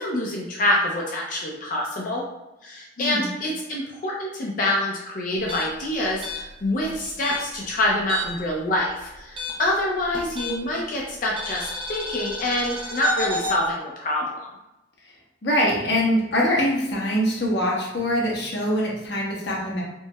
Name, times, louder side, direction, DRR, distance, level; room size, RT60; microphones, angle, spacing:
voice 1, 0.0-2.2 2.6-14.5, left 1 dB, 45° left, -2 dB, 0.4 m, -26 dB
voice 2, 3.0-3.3 15.4-19.8, equal, 60° left, -3 dB, 0.9 m, -23 dB
sound 1, 5.4-8.5 8.8-10.8 11.4-13.6, left 1 dB, 25° right, 0.4 m, -32 dB
4.4 x 2.0 x 2.2 m, 0.96 s
head